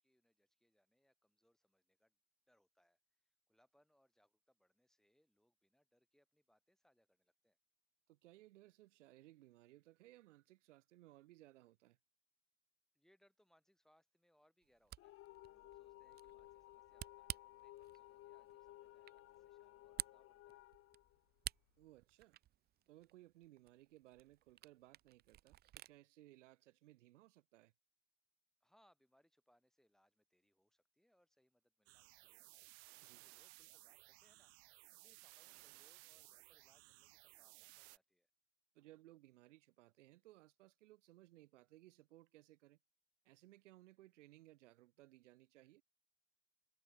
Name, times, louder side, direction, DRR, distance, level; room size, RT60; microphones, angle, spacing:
voice 1, 0.0-2.2 2.5-7.6 12.9-15.1 15.4-20.6 28.6-32.7 33.2-38.3, equal, ahead, 6.6 m, -77 dB
voice 2, 8.1-12.0 21.8-22.4 22.9-27.7 33.0-33.2 38.7-42.8 43.2-45.8, right 16 dB, 90° right, 1.2 m, -63 dB
Camera, 14.6-26.0, right 13 dB, 25° right, 0.7 m, -53 dB
sound 1, 15.0-21.9, left 15 dB, 40° left, 2.0 m, -59 dB
sound 2, 31.9-38.0, right 28 dB, 65° right, 1.5 m, -61 dB
supercardioid pair, 130°, 35 cm